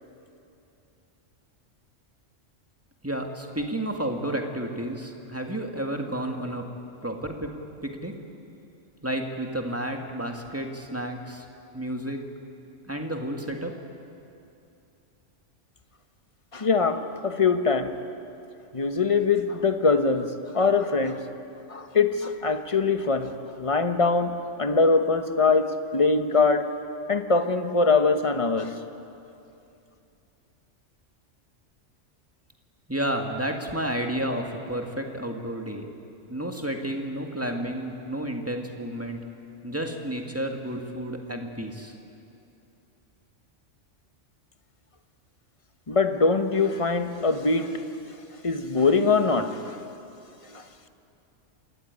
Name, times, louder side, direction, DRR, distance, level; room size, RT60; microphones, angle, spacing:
voice 1, 3.0-6.7 7.0-7.5 7.8-8.1 9.0-11.5 11.7-12.2 12.9-13.7 32.9-35.9 36.3-39.3 39.6-41.9, right 1 dB, 10° right, 3 dB, 1.8 m, -31 dB
voice 2, 16.5-18.0 18.7-21.2 21.7-26.7 27.1-28.7 45.9-47.8 48.4-49.8 50.5-50.6, left 4 dB, 30° left, 8 dB, 1.1 m, -23 dB
26.5 x 14.0 x 9.6 m, 2.7 s
omnidirectional pair, 1.3 m